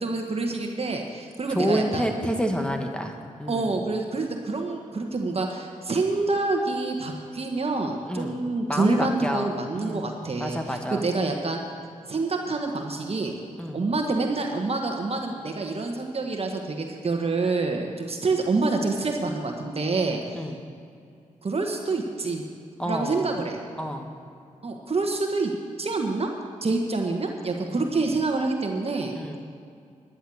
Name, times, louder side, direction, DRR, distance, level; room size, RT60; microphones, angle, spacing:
voice 1, 0.0-2.0 3.5-11.6 12.1-13.4 13.7-20.4 21.4-22.4 22.8-23.6 24.6-25.5 25.8-26.3 26.6-29.2, right 3 dB, 45° right, 2 dB, 1.5 m, -27 dB
voice 2, 1.5-3.8 8.1-8.4 8.7-10.1 10.4-11.0 13.6-13.8 20.3-20.6 22.8-23.3 23.8-24.1 27.7-27.8 29.1-29.4, equal, 5° left, 4 dB, 1.5 m, -29 dB
11.5 x 10.5 x 6.4 m, 2.4 s
cardioid pair, 55°, 14 cm